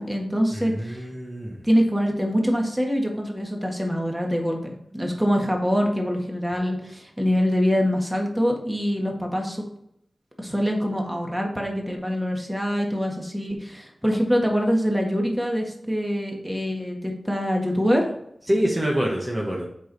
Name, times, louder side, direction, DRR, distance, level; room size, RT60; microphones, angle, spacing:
voice 1, 0.0-1.1 1.6-9.6 10.4-18.1, equal, 5° right, 1 dB, 1.7 m, -24 dB
voice 2, 0.5-1.6 18.5-19.7, equal, 25° right, -2 dB, 1.4 m, -25 dB
7.5 x 5.4 x 4.1 m, 0.72 s
wide cardioid pair, 75°, 0 cm